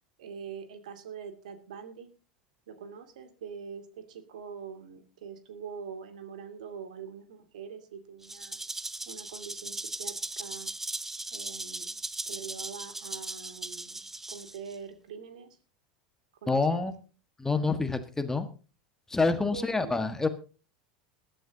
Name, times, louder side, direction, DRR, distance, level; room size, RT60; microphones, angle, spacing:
voice 1, 0.2-2.1 2.7-8.6 9.1-10.7 11.3-11.9 12.3-14.0 14.3-15.6 16.4-16.8 19.4-20.0, right 7 dB, 65° right, 7 dB, 2.4 m, -44 dB
Rattle (instrument), 8.2-14.8, right 2 dB, 10° right, 0.8 m, -38 dB
voice 2, 16.5-16.9 17.4-18.5 19.1-20.3, left 3 dB, 10° left, 9 dB, 1.5 m, -27 dB
21.5 x 11.5 x 2.8 m, 0.35 s
figure-of-eight pair, 80°, 4 cm